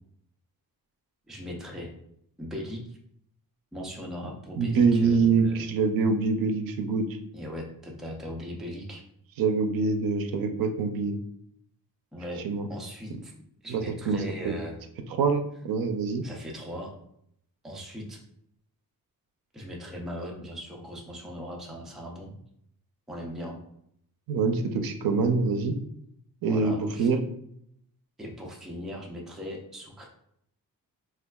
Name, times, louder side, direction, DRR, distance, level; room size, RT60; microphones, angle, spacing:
voice 1, 1.3-1.9 2.4-2.8 3.7-5.7 7.3-9.0 12.1-13.3 13.6-14.8 16.2-17.0 17.6-18.2 19.5-22.3 23.1-23.6 26.5-27.1 28.2-30.1, equal, ahead, -1 dB, 0.4 m, -39 dB
voice 2, 4.6-7.1 9.4-11.2 12.4-12.7 13.7-14.5 15.2-16.2 24.3-25.7 26.4-27.2, right 4 dB, 70° right, 7 dB, 0.5 m, -25 dB
4.3 x 2.3 x 2.2 m, 0.71 s
wide cardioid pair, 155°, 36 cm